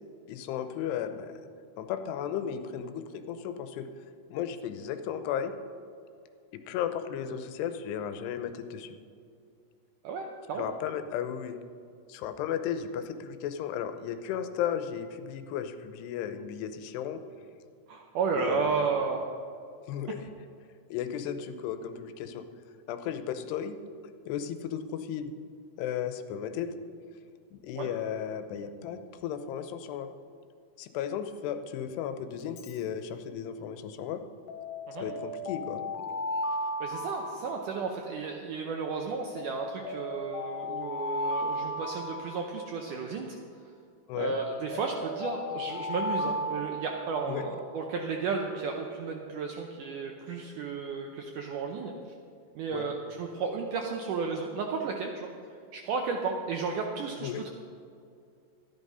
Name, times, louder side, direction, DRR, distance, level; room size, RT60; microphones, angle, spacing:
voice 1, 0.3-1.4 1.8-3.9 4.3-5.5 6.5-9.0 10.6-11.6 12.1-17.2 18.3-18.9 19.9-20.2 20.9-22.4 22.9-23.8 24.2-25.3 25.8-26.7 27.5-30.1 30.8-34.2 35.0-36.1 44.1-44.3 47.3-47.5 52.7-52.9 57.2-57.4, left 9 dB, 90° left, 9 dB, 2.9 m, -35 dB
voice 2, 10.0-10.7 17.9-19.3 27.8-27.9 34.9-35.1 36.8-43.4 44.2-51.9 52.6-55.3 55.7-57.3, right 5 dB, 80° right, 2 dB, 1.8 m, -33 dB
Alarm, 32.4-32.8 34.5-38.2 39.4-43.1 44.2-47.5, left 1 dB, 75° left, 3.3 m, -35 dB
13.0 x 11.0 x 5.5 m, 2.4 s
omnidirectional pair, 4.7 m